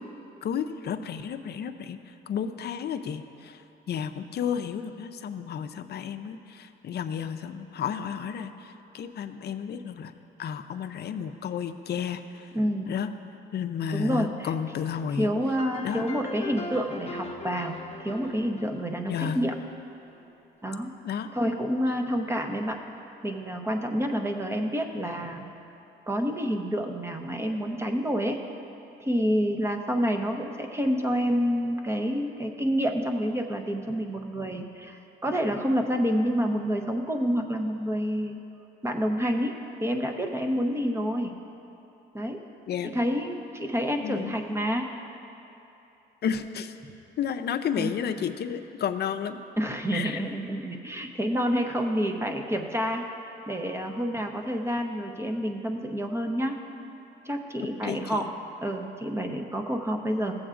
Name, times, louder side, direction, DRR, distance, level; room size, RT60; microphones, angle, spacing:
voice 1, 0.4-10.1 10.4-12.5 12.9-13.1 13.5-15.3 15.8-16.0 19.1-19.4 21.0-21.3 42.7-42.9 44.0-44.4 46.2-46.7 47.2-49.4 49.9-50.2 57.8-58.2, left 8 dB, 55° left, 8 dB, 0.5 m, -32 dB
voice 2, 12.5-12.9 13.9-14.5 15.2-19.6 20.6-20.9 21.3-22.8 23.2-25.4 26.1-28.4 29.0-38.4 38.8-39.5 39.8-41.3 42.1-42.4 42.8-44.9 47.8-47.9 49.6-53.0 53.5-56.6 57.2-58.2 58.6-60.4, equal, 15° right, 4 dB, 0.8 m, -28 dB
sound 1, 15.5-20.1, left 2 dB, 30° left, 0.8 m, -40 dB
15.0 x 7.8 x 2.5 m, 2.9 s
cardioid pair, 90°, 20 cm